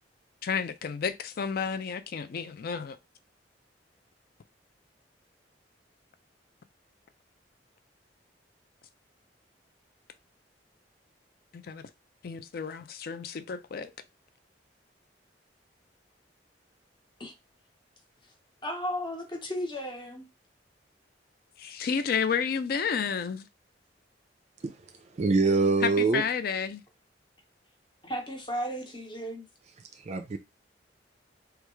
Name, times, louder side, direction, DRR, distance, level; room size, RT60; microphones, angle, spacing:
voice 1, 0.4-3.0 11.5-11.8 12.2-13.9 21.6-23.5 25.8-26.8, left 6 dB, 55° left, 0.4 m, -31 dB
voice 2, 18.6-20.3 28.0-29.4, equal, 25° left, 0.9 m, -34 dB
voice 3, 25.1-26.2 30.1-30.4, right 3 dB, 40° right, 0.4 m, -24 dB
3.4 x 2.3 x 3.1 m
head